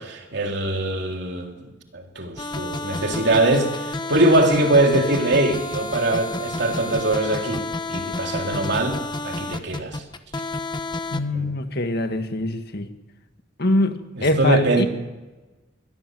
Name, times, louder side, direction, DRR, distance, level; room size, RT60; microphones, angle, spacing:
voice 1, 0.0-9.0 9.2-10.0 11.3-11.5 14.2-14.9, right 2 dB, 65° right, 2 dB, 3.5 m, -22 dB
sound 1, 2.4-11.2, left 2 dB, 25° left, 1.2 m, -30 dB
voice 2, 11.1-12.9 13.6-14.9, left 2 dB, 60° left, 7 dB, 1.8 m, -23 dB
23.0 x 17.0 x 7.8 m, 1.1 s
head